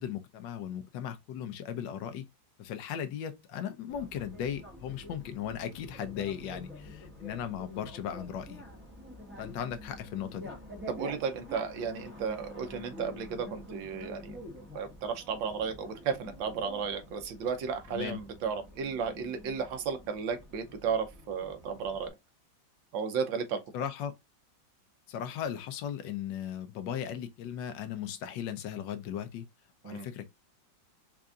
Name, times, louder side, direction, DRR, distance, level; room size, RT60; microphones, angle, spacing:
voice 1, 0.0-2.2 2.6-8.6 9.4-10.5 17.9-18.2 23.7-24.1 25.1-29.5 29.8-30.3, left 9 dB, 75° left, 1.3 m, -37 dB
Bicycle, 3.9-22.1, left 1 dB, 10° right, 0.7 m, -48 dB
voice 2, 10.9-14.4 14.7-22.1 22.9-23.6 29.8-30.1, right 6 dB, 75° right, 1.5 m, -34 dB
4.6 x 2.6 x 2.4 m
omnidirectional pair, 2.1 m